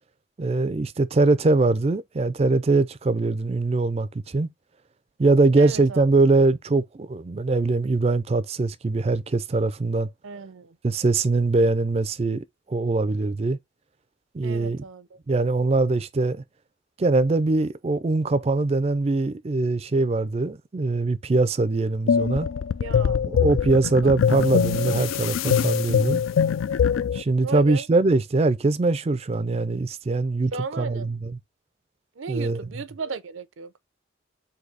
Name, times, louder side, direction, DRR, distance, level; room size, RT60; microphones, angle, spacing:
voice 1, 0.4-4.5 5.2-10.1 10.8-13.6 14.3-14.8 15.3-16.4 17.0-22.5 23.2-26.2 27.1-30.5 30.8-31.3 32.3-32.6, right 3 dB, 30° right, 0.4 m, -22 dB
voice 2, 5.6-6.1 10.2-10.8 14.4-15.2 22.8-23.3 24.0-24.5 27.4-27.9 30.5-31.1 32.2-33.7, right 4 dB, 80° right, 0.5 m, -35 dB
sound 1, 22.1-27.2, left 7 dB, 80° left, 0.3 m, -23 dB
4.0 x 2.7 x 4.6 m
head